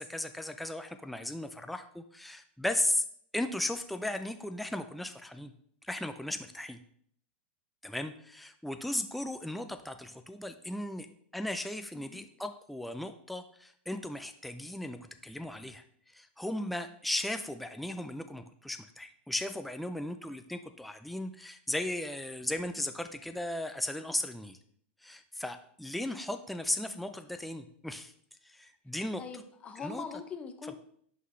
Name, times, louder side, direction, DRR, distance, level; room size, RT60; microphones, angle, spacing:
voice 1, 0.0-3.1 3.3-5.5 5.8-6.8 7.8-11.1 11.3-24.6 25.0-28.1 28.4-29.2 29.8-30.1 30.6-30.8, left 1 dB, ahead, 8 dB, 0.3 m, -36 dB
voice 2, 29.2-30.8, left 5 dB, 20° left, 8 dB, 0.7 m, -42 dB
11.0 x 4.0 x 3.1 m, 0.63 s
supercardioid pair, 140°, 6 cm